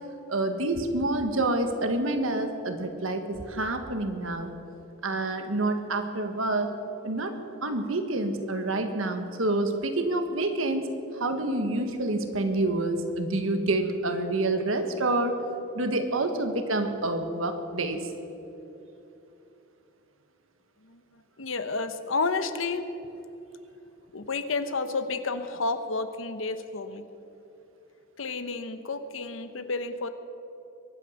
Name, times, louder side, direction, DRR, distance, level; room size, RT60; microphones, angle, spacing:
voice 1, 0.3-4.5 5.0-6.7 7.0-15.4 15.7-18.1, right 2 dB, 85° right, 7 dB, 1.5 m, -28 dB
voice 2, 21.4-22.9 24.1-27.0 28.2-30.1, left 3 dB, 75° left, 10 dB, 1.0 m, -31 dB
22.5 x 9.0 x 6.5 m, 2.9 s
head